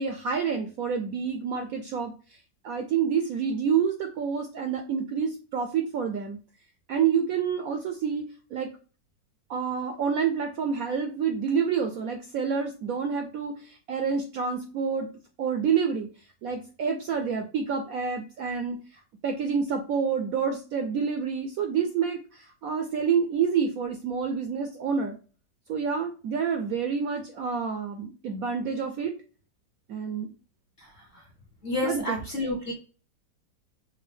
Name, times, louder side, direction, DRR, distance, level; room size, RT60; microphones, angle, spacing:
voice 1, 0.0-2.4 2.6-6.4 6.9-8.7 9.5-15.1 15.4-16.1 16.4-18.8 19.2-25.2 25.7-29.1 29.9-30.3 31.8-32.2, right 6 dB, 70° right, 6 dB, 0.8 m, -28 dB
voice 2, 31.6-32.8, left 1 dB, 40° left, -1 dB, 0.9 m, -30 dB
5.3 x 2.3 x 3.3 m, 0.36 s
omnidirectional pair, 1.9 m